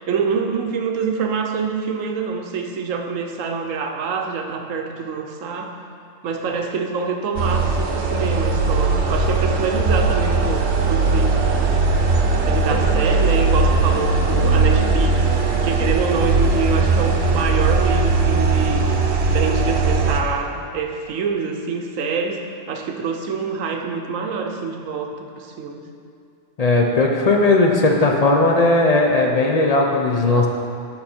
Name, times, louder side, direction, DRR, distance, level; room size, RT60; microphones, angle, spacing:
voice 1, 0.1-5.7 6.2-10.6 10.9-11.4 12.5-15.3 15.6-18.9 19.3-22.4 22.7-25.8, right 5 dB, 85° right, 4 dB, 1.1 m, -25 dB
sound 1, 7.4-20.2, right 3 dB, 65° right, 0.9 m, -19 dB
voice 2, 26.6-30.5, left 2 dB, 40° left, 1 dB, 0.6 m, -17 dB
8.7 x 5.6 x 4.3 m, 2.4 s
omnidirectional pair, 1.3 m